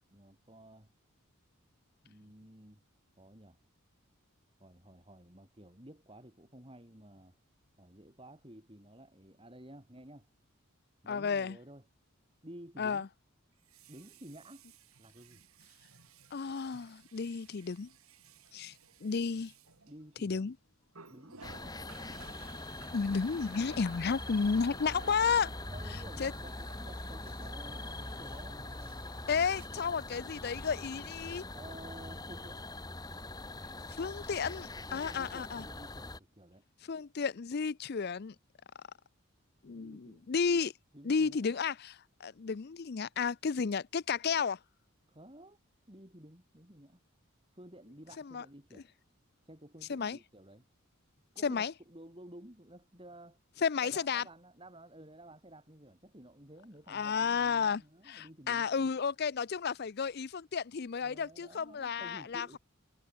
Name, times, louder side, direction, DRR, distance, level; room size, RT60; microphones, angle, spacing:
voice 1, 0.1-0.9 2.0-2.8 3.2-3.6 4.6-7.3 7.8-10.3 11.0-11.8 12.4-13.1 13.9-14.6 15.0-15.4 19.9-20.5 21.1-21.9 24.8-29.0 31.5-32.6 34.9-36.6 39.7-40.3 40.9-41.5 45.1-45.6 45.9-47.0 47.5-48.9 49.4-50.6 51.3-53.4 53.8-58.9 61.0-62.6, right 1 dB, 25° right, 4.5 m, -53 dB
Water tap faucet, 10.0-10.1 13.5-20.4 20.9-29.7, right 5 dB, 85° right, 6.0 m, -57 dB
voice 2, 11.1-11.6 12.8-13.1 16.3-17.9 18.5-18.7 19.0-19.5 20.2-20.6 22.9-25.5 26.2-26.3 29.3-31.4 33.9-35.6 36.8-38.3 39.6-40.7 41.0-44.6 48.2-48.4 49.9-50.2 51.4-51.7 53.6-54.2 56.9-62.6, left 5 dB, 50° left, 0.5 m, -32 dB
sound 1, 21.4-36.2, left 2 dB, 20° left, 1.7 m, -43 dB
head